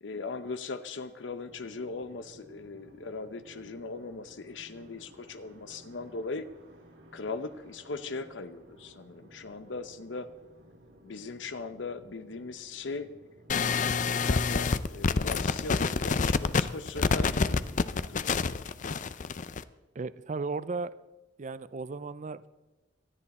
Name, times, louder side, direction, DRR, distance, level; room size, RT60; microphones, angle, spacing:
voice 1, 0.0-6.5 7.1-10.3 11.0-13.1 13.6-17.7 18.1-18.7, left 3 dB, 85° left, 11 dB, 0.8 m, -39 dB
sound 1, 1.4-15.4, equal, 90° right, 2.9 m, -56 dB
sound 2, 13.5-19.6, left 4 dB, 45° left, 0.5 m, -27 dB
voice 2, 19.9-20.9 21.4-22.5, right 4 dB, 40° right, 16 dB, 0.5 m, -35 dB
18.5 x 13.5 x 4.2 m, 1.0 s
head